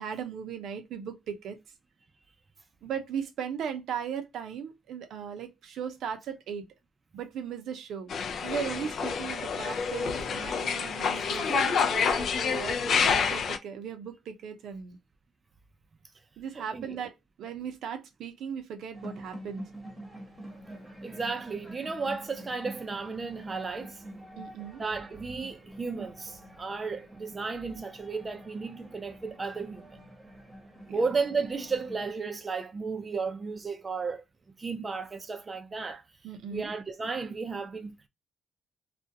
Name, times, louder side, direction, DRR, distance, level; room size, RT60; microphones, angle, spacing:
voice 1, 0.0-1.6 2.8-6.6 7.1-8.1 8.4-15.0 16.4-19.6 24.4-24.8 30.9-31.0 36.2-36.7, right 7 dB, 75° right, 0.6 m, -37 dB
sound 1, 8.1-13.6, left 6 dB, 60° left, 0.4 m, -28 dB
voice 2, 16.5-17.0 21.0-24.0 24.8-30.0 30.9-34.2 34.6-36.0 36.5-38.1, right 4 dB, 30° right, 0.4 m, -34 dB
sound 2, 18.9-32.1, right 1 dB, 15° right, 0.9 m, -47 dB
2.4 x 2.1 x 2.6 m
cardioid pair, 90°, 0 cm